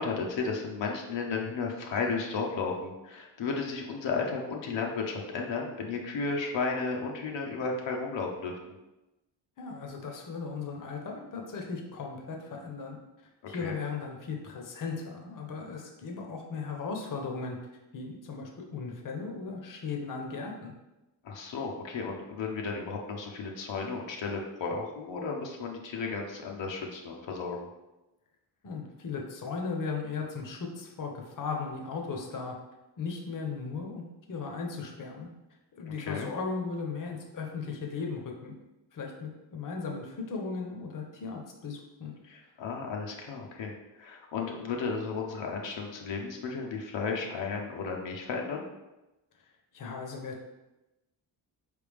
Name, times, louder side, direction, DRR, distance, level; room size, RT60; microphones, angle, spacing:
voice 1, 0.0-8.6 13.6-13.8 21.2-27.7 35.8-36.3 42.2-48.7, left 4 dB, 80° left, 0 dB, 0.8 m, -34 dB
voice 2, 9.6-13.0 13.5-17.6 17.9-20.7 28.6-32.5 33.0-35.3 35.8-38.5 38.9-42.1 49.7-50.5, left 4 dB, 45° left, 1 dB, 0.8 m, -37 dB
4.5 x 3.3 x 3.4 m, 1.0 s
cardioid pair, 105°, 44 cm